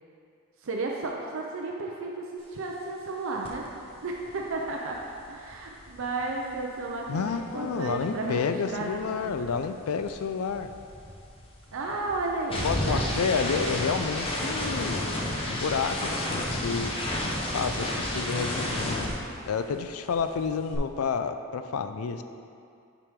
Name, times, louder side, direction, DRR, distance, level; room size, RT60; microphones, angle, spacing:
voice 1, 0.6-3.6 4.0-5.0 5.3-9.3 11.7-13.3, right 3 dB, 60° right, -1 dB, 0.5 m, -33 dB
sound 1, 3.4-3.7 3.9-8.3 8.6-19.9 20.1-20.8, left 1 dB, 25° left, 0.8 m, -32 dB
voice 2, 7.1-10.7 12.6-15.1 15.5-16.9 17.5-19.1 19.5-22.2, left 5 dB, 70° left, 9 dB, 0.4 m, -30 dB
8.6 x 4.9 x 3.6 m, 2.4 s
head